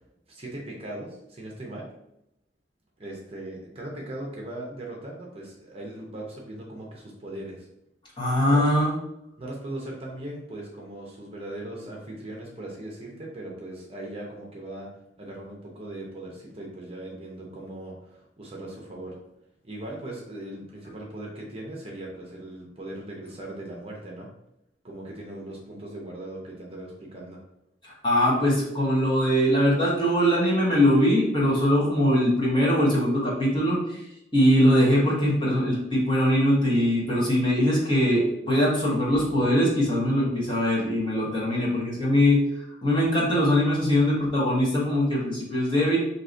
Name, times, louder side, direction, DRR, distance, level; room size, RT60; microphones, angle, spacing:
voice 1, 0.3-1.9 3.0-7.7 8.5-8.7 9.4-14.9 15.2-19.2 19.6-24.3 24.8-27.4, right 1 dB, 30° right, -2 dB, 0.7 m, -39 dB
voice 2, 8.2-8.9 27.8-34.0 34.3-42.4 42.8-46.0, equal, 25° left, -5 dB, 1.2 m, -22 dB
4.6 x 2.8 x 2.6 m, 0.82 s
head